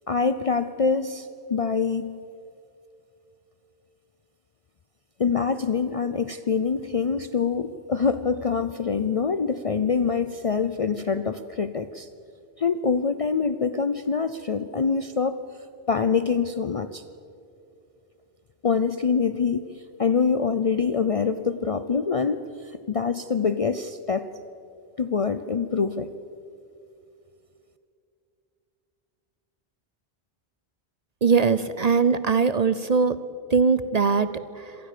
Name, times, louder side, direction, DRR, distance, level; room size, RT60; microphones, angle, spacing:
voice 1, 0.1-2.2 5.2-12.1 12.6-15.4 15.9-17.0 18.6-19.6 20.0-22.4 22.9-24.3 25.0-26.1, left 5 dB, 40° left, 11 dB, 0.6 m, -25 dB
voice 2, 31.2-33.2 33.5-34.8, right 5 dB, 45° right, 14 dB, 0.7 m, -21 dB
26.0 x 19.0 x 6.7 m, 2.6 s
omnidirectional pair, 1.1 m